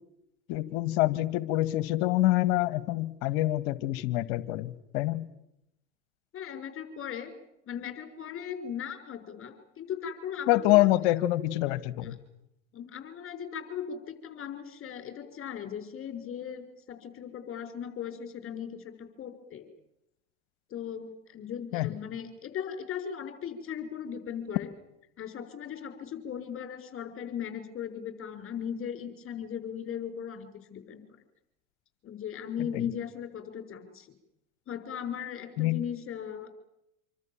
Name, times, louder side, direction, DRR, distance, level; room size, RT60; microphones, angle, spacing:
voice 1, 0.5-5.3 10.5-12.2 21.7-21.9 32.7-32.9 35.6-35.8, left 16 dB, 60° left, 17 dB, 1.7 m, -26 dB
voice 2, 6.3-7.3 7.7-10.9 12.0-12.1 12.7-19.7 20.7-24.7 25.2-31.0 32.0-34.1 34.7-36.5, left 8 dB, 35° left, 8 dB, 5.8 m, -38 dB
27.0 x 25.5 x 7.4 m, 0.84 s
hypercardioid pair, 80°, 38 cm